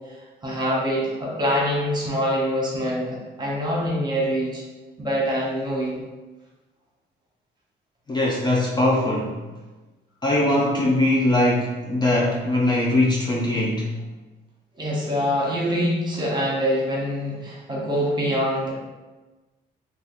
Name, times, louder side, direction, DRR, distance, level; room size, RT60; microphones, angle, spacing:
voice 1, 0.4-4.6 5.0-6.0 14.8-18.7, equal, 20° right, -4 dB, 1.1 m, -24 dB
voice 2, 8.1-9.4 10.2-13.9, left 1 dB, 20° left, -3 dB, 0.4 m, -21 dB
2.7 x 2.4 x 3.9 m, 1.2 s
cardioid pair, 90°, 20 cm